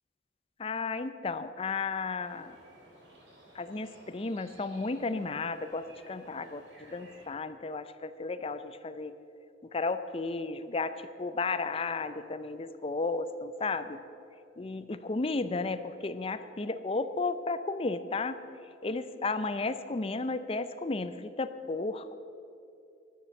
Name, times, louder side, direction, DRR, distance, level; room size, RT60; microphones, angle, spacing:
voice 1, 0.6-2.6 3.5-9.2 9.7-14.0 14.6-18.4 18.8-22.2, left 3 dB, 30° left, 11 dB, 0.5 m, -33 dB
sound 1, 2.2-7.3, right 1 dB, 75° right, 3.2 m, -56 dB
12.0 x 10.0 x 7.0 m, 2.6 s
head